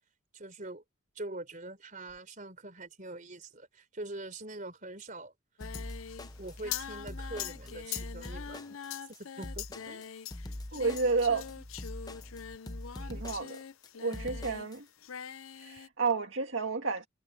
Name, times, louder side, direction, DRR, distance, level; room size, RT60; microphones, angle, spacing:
voice 1, 0.3-0.8 1.1-5.3 6.4-8.8 9.1-10.0, right 2 dB, 35° right, 4.2 m, -43 dB
Singing, 5.6-14.7 15.0-15.9, left 9 dB, 75° left, 0.6 m, -43 dB
sound 1, 5.6-14.8, left 1 dB, 20° left, 0.7 m, -43 dB
voice 2, 10.7-11.6 13.0-13.6 14.0-14.9 15.5-17.1, right 4 dB, 60° right, 2.0 m, -31 dB
head